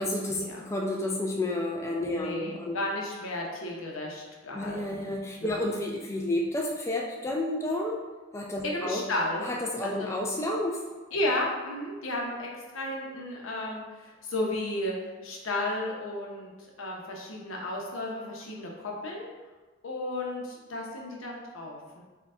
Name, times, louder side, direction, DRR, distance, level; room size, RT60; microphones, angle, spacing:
voice 1, 0.0-2.8 4.5-8.0 8.3-9.0 9.5-10.8, left 1 dB, 15° left, -1 dB, 0.3 m, -30 dB
voice 2, 2.1-5.6 8.6-9.5 9.8-10.1 11.1-15.0 15.2-16.5 16.8-19.3 19.8-22.0, left 1 dB, 90° left, -1 dB, 0.8 m, -33 dB
4.4 x 2.3 x 3.6 m, 1.3 s
head